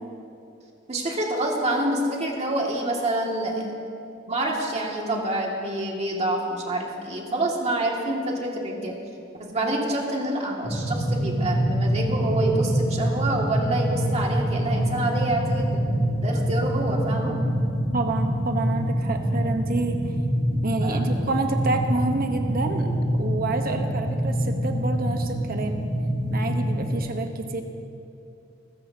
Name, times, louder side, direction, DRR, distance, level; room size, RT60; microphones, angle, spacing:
voice 1, 0.9-3.7 4.3-8.9 9.4-15.9 16.2-17.3 20.8-21.0, right 1 dB, 35° right, -1 dB, 2.2 m, -27 dB
sound 1, 10.6-27.0, equal, 5° right, 2.7 m, -25 dB
voice 2, 17.9-20.0 20.6-25.8 26.3-27.6, right 2 dB, 50° right, 5 dB, 1.1 m, -28 dB
25.0 x 14.5 x 2.8 m, 2.6 s
head